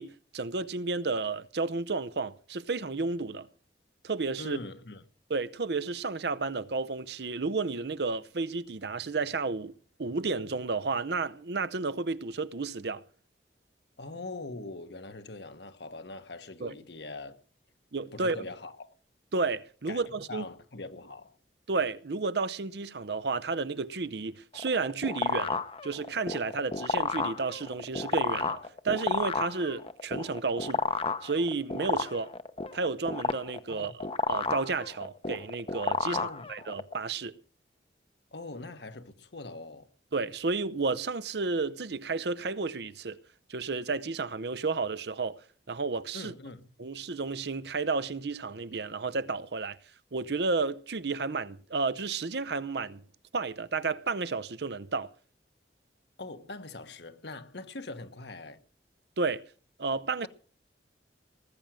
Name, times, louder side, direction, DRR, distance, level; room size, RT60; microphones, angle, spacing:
voice 1, 0.0-3.5 4.0-4.6 5.3-13.0 16.6-16.7 17.9-18.4 19.3-20.5 21.7-28.6 28.8-30.8 31.2-32.3 32.7-37.4 40.1-43.2 43.5-46.3 46.8-49.8 50.1-53.0 53.3-55.1 59.2-59.5 59.8-60.3, right 4 dB, 65° right, 0.7 m, -32 dB
voice 2, 4.4-5.0 14.0-17.4 18.1-18.9 19.9-21.4 33.7-33.9 36.1-36.5 38.3-39.9 46.1-46.7 56.2-58.6, left 2 dB, 70° left, 1.4 m, -42 dB
sound 1, 24.5-36.9, left 4 dB, 30° left, 0.8 m, -31 dB
19.5 x 8.9 x 6.4 m
head